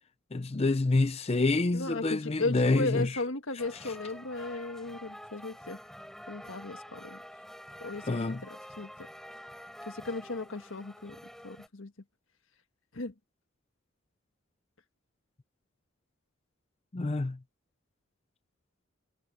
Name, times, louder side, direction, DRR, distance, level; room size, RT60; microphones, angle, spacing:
voice 1, 0.3-3.1 8.0-8.4 16.9-17.4, left 2 dB, 30° left, 0.5 m, -27 dB
voice 2, 1.7-5.8 6.3-7.2 7.8-8.5 8.8-9.1 9.9-11.2 11.4-11.9 12.9-13.1, left 2 dB, 80° left, 1.5 m, -36 dB
sound 1, 3.6-11.7, equal, ahead, 4.6 m, -48 dB
head